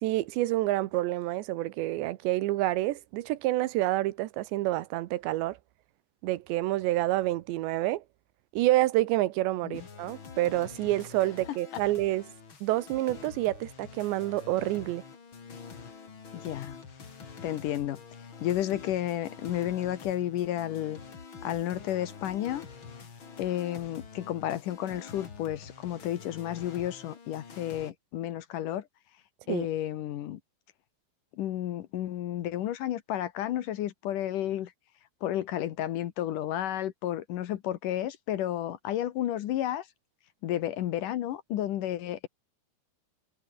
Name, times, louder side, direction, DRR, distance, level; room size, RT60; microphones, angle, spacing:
voice 1, 0.0-5.6 6.2-8.0 8.5-12.2 12.6-15.0 29.5-29.7, right 16 dB, 75° right, 3.0 m, -28 dB
sound 1, 9.7-27.9, left 5 dB, 35° left, 2.7 m, -47 dB
voice 2, 16.3-16.8 17.4-21.0 21.4-22.6 23.4-28.9 29.5-30.4 31.3-34.7 35.2-39.9 40.4-42.3, left 12 dB, 75° left, 2.0 m, -32 dB
omnidirectional pair, 5.4 m